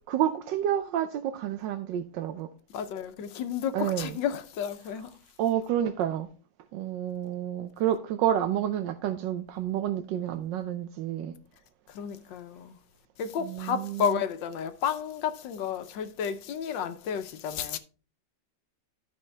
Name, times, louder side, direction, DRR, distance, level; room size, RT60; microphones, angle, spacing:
voice 1, 0.1-2.5 3.7-4.1 5.4-6.3 6.7-11.4 13.4-14.0, right 11 dB, 80° right, 1.3 m, -29 dB
voice 2, 2.7-5.2 11.9-12.8 13.2-17.8, left 8 dB, 80° left, 1.5 m, -32 dB
12.5 x 5.4 x 3.3 m
omnidirectional pair, 2.0 m